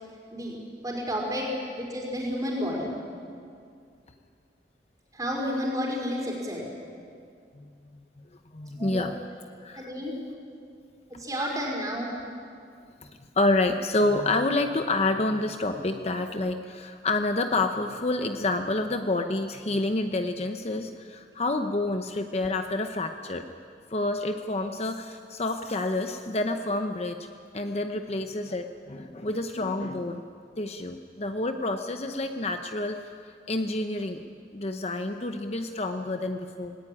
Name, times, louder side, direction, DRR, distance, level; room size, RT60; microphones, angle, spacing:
voice 1, 0.8-1.5 1.8-2.9 5.1-6.6 8.8-9.1 9.7-10.1 11.2-12.1, equal, 20° right, -1 dB, 4.9 m, -31 dB
voice 2, 8.5-9.1 9.6-9.9 13.0-13.1 13.4-23.5 23.9-27.2 27.5-30.2 30.6-33.1 33.5-34.2 34.5-36.8, left 2 dB, 35° left, 6 dB, 0.8 m, -28 dB
19.5 x 17.5 x 10.0 m, 2.3 s
head